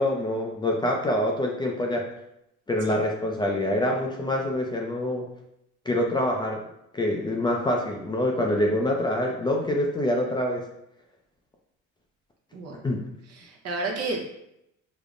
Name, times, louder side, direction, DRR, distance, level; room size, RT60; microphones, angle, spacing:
voice 1, 0.0-2.1 2.7-5.3 5.9-6.6 6.9-10.6 12.8-13.0, left 1 dB, 15° left, 0 dB, 0.3 m, -25 dB
voice 2, 12.5-12.8 13.3-14.4, right 3 dB, 55° right, 0 dB, 0.8 m, -32 dB
5.0 x 2.0 x 2.4 m, 0.81 s
cardioid pair, 120°, 29 cm